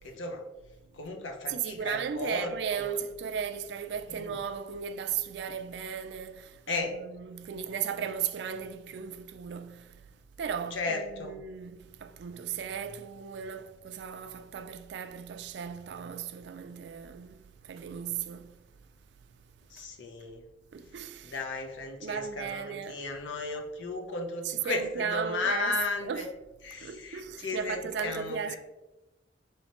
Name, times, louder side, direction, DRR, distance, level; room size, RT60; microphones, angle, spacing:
voice 1, 0.0-0.4 0.9-2.9 4.1-4.3 6.7-6.9 10.7-11.4 19.7-20.4 21.2-26.3 26.6-28.6, left 3 dB, 85° left, 0.7 m, -35 dB
voice 2, 1.5-10.0 10.4-18.6 20.7-21.3 22.0-23.0 24.4-25.7 26.0-26.2 26.8-28.6, right 7 dB, 65° right, 0.3 m, -36 dB
4.3 x 3.1 x 2.9 m
head